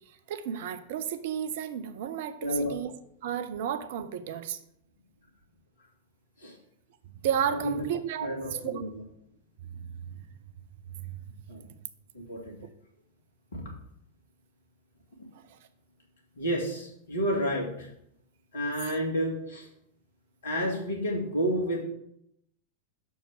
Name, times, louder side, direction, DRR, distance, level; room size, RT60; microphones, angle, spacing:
voice 1, 0.1-2.9 3.2-4.6 7.2-8.8 10.1-10.2 10.9-11.2 15.3-15.6, right 9 dB, 55° right, 10 dB, 0.6 m, -33 dB
voice 2, 2.4-2.7 6.4-6.5 7.6-7.8 8.2-9.0 11.5-11.6 12.1-12.6 13.5-13.7 16.4-17.9 18.5-19.7 20.4-21.8, equal, 65° left, 0 dB, 2.1 m, -30 dB
6.4 x 4.7 x 6.4 m, 0.75 s
figure-of-eight pair, 90°, 0 cm